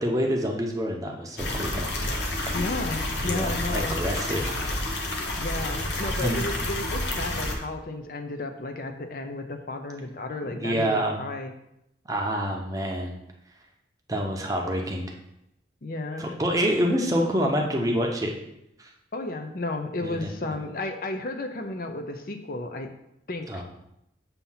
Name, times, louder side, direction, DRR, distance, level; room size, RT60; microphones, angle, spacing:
voice 1, 0.0-1.9 3.2-4.6 6.2-6.4 10.5-11.2 12.1-13.2 14.1-15.1 16.2-18.3 18.8-18.9 20.0-20.5 23.5-23.6, equal, 20° right, 1 dB, 0.7 m, -27 dB
sound 1, 1.4-7.5, left 1 dB, 70° left, 0.9 m, -29 dB
voice 2, 2.5-4.0 5.4-11.5 15.8-16.2 19.1-22.9 23.3-23.6, left 2 dB, 50° left, 6 dB, 0.5 m, -33 dB
7.1 x 2.7 x 5.6 m, 0.81 s
head